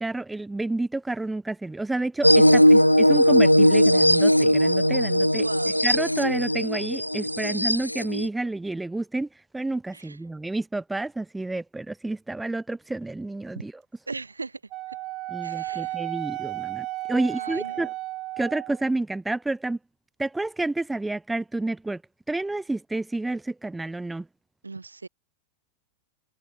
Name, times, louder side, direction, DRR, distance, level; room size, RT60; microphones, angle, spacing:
voice 1, 0.0-5.5 5.8-9.3 9.5-13.7 15.3-17.9 18.4-19.8 20.2-22.0 22.3-24.3, right 2 dB, 5° right, 0.6 m, -29 dB
sound 1, 2.2-8.3, equal, 90° left, 0.3 m, -19 dB
voice 2, 5.2-5.8 7.5-7.8 9.9-10.2 13.5-13.6 14.1-14.6 14.9-15.0 15.4-16.0 17.2-17.9 24.6-25.1, right 3 dB, 80° right, 6.8 m, -38 dB
Wind instrument woodwind instrument, 14.7-18.9, right 18 dB, 40° right, 1.6 m, -33 dB
figure-of-eight pair, 90°, 0 cm